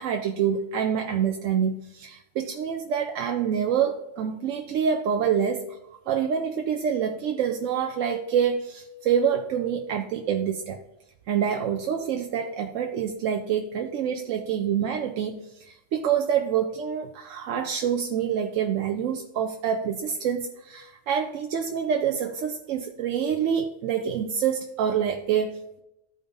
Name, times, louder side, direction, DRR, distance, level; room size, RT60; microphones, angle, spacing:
voice 1, 0.0-5.6 6.1-10.8 11.3-25.8, right 8 dB, 85° right, 4 dB, 1.0 m, -26 dB
13.5 x 5.1 x 2.6 m, 0.87 s
omnidirectional pair, 1.3 m